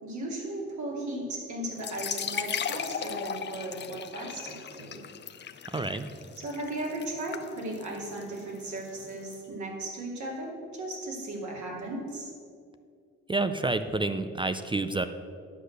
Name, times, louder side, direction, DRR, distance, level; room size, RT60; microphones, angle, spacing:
voice 1, 0.0-5.0 6.4-12.3, right 1 dB, 70° right, -2 dB, 2.7 m, -36 dB
sound 1, 1.7-9.3, left 7 dB, 35° left, 0.6 m, -37 dB
voice 2, 5.7-6.1 13.3-15.1, right 2 dB, 15° right, 10 dB, 0.4 m, -29 dB
10.0 x 6.4 x 6.5 m, 2.3 s
cardioid pair, 90°, 30 cm